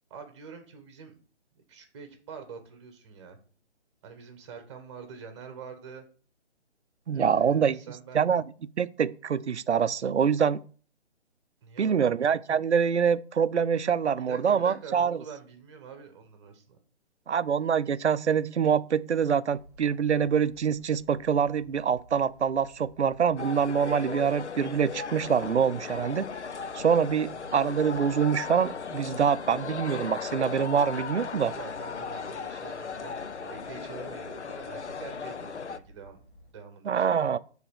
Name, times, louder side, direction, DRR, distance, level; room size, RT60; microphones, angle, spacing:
voice 1, 0.1-1.1 1.5-3.4 4.0-6.0 7.1-8.3 11.6-12.1 14.2-16.8 31.3-36.2 36.5-37.4, right 6 dB, 25° right, 1.2 m, -45 dB
voice 2, 7.1-7.8 8.1-8.4 8.8-10.6 11.8-15.2 17.3-26.3 26.7-31.5 36.8-37.4, right 7 dB, 80° right, 0.5 m, -25 dB
sound 1, 19.5-36.5, right 1 dB, 45° left, 2.4 m, -54 dB
sound 2, 23.4-35.8, left 6 dB, 85° left, 0.6 m, -37 dB
7.4 x 3.5 x 6.3 m
figure-of-eight pair, 140°, 34 cm